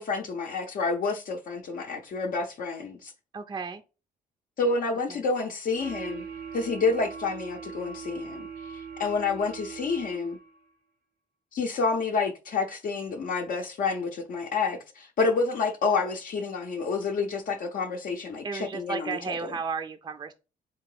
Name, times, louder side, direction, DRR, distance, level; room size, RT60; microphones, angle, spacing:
voice 1, 0.0-3.1 4.6-6.2 6.5-8.5 8.7-10.4 11.5-19.5, left 4 dB, 60° left, 0.6 m, -29 dB
voice 2, 3.3-3.8 5.1-5.2 18.4-20.3, right 5 dB, 25° right, 0.4 m, -33 dB
sound 1, 5.8-10.6, right 6 dB, 90° right, 0.7 m, -40 dB
3.7 x 3.0 x 4.8 m
cardioid pair, 105°, 16 cm